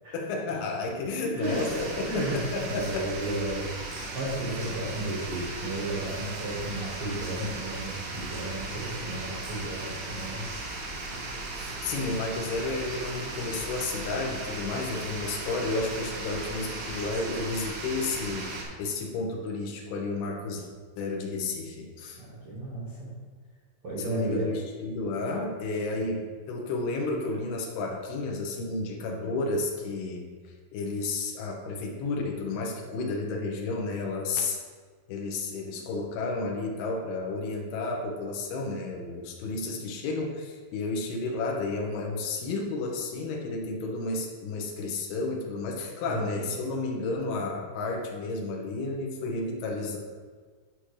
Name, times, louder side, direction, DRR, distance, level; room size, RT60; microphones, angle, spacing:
voice 1, 0.1-3.1 11.6-20.7 21.0-22.2 24.0-30.2 30.7-34.6 35.1-50.0, left 3 dB, 80° left, 0 dB, 2.3 m, -32 dB
sound 1, 1.4-18.6, right 2 dB, 75° right, 3.8 m, -37 dB
voice 2, 2.0-2.4 2.7-3.7 4.1-10.4 22.2-23.1 23.8-24.5 25.9-26.0 46.0-46.5, right 1 dB, 90° right, -7 dB, 1.2 m, -33 dB
11.5 x 5.9 x 3.3 m, 1.5 s
omnidirectional pair, 5.9 m